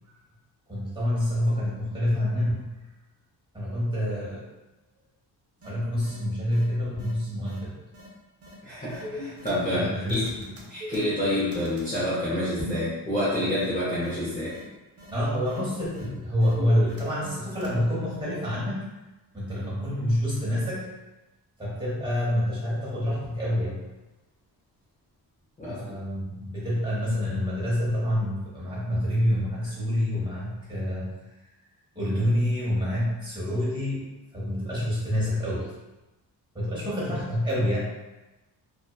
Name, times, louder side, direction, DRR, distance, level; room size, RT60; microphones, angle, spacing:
voice 1, 0.7-2.8 3.5-4.5 5.6-7.7 9.7-10.5 15.1-18.9 19.3-20.9 21.6-23.9 25.7-31.1 31.9-34.1 34.3-35.7 36.5-37.8, equal, 10° right, -8 dB, 0.9 m, -27 dB
sound 1, 5.6-5.7 6.0-6.2 6.5-6.6 7.0-7.1 7.5-7.6 7.9-8.1 8.4-8.5 8.9-9.8 10.1-11.9 12.6-12.9 13.2-13.3 13.5-13.7 14.0-14.1 14.5-14.6 15.0-15.1 15.4-15.6 15.9-16.1 16.4-17.3 17.6-17.7, left 1 dB, 40° right, 0.5 m, -39 dB
voice 2, 8.6-10.4 10.7-14.6 25.6-25.8, left 1 dB, 20° left, -10 dB, 0.6 m, -28 dB
2.6 x 2.2 x 2.2 m, 1.1 s
wide cardioid pair, 130°, 40 cm